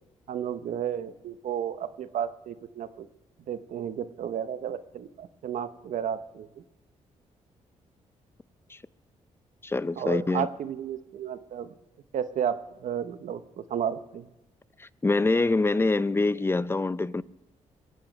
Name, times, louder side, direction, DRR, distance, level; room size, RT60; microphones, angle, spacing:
voice 1, 0.3-3.1 3.5-6.6 10.0-11.7 12.1-14.3, right 9 dB, 75° right, 0.8 m, -33 dB
voice 2, 9.6-10.5 14.8-17.2, left 3 dB, 20° left, 0.5 m, -25 dB
22.0 x 9.0 x 5.2 m
cardioid pair, 70°, 13 cm